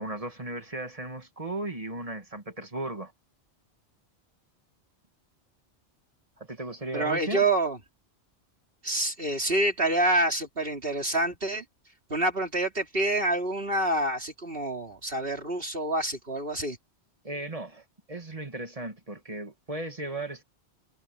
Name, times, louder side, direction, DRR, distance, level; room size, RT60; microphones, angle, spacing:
voice 1, 0.0-3.1 6.4-7.4 17.2-20.4, right 2 dB, 30° right, 2.2 m, -36 dB
voice 2, 6.9-7.8 8.8-11.6 12.1-16.8, right 1 dB, 55° right, 3.7 m, -27 dB
omnidirectional pair, 1.2 m